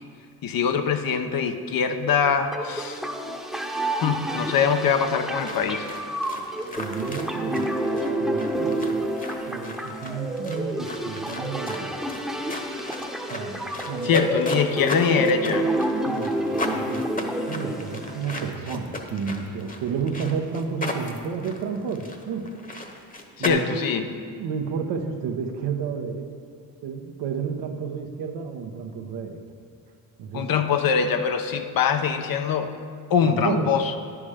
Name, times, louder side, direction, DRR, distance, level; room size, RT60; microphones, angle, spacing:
voice 1, 0.4-3.0 4.0-5.9 14.0-15.7 23.4-24.0 30.3-32.7 33.1-33.9, left 6 dB, 55° left, 7 dB, 0.8 m, -23 dB
sound 1, 2.5-18.5, right 1 dB, ahead, 1.0 m, -29 dB
sound 2, 5.4-23.5, left 2 dB, 20° left, 1.2 m, -37 dB
voice 2, 6.4-9.0 9.4-11.9 13.3-14.4 16.0-17.1 17.4-22.5 23.4-26.3 26.8-29.4 30.2-30.5 33.2-33.7, right 6 dB, 75° right, 4 dB, 1.1 m, -31 dB
9.8 x 6.1 x 5.0 m, 2.3 s
supercardioid pair, 70°, 41 cm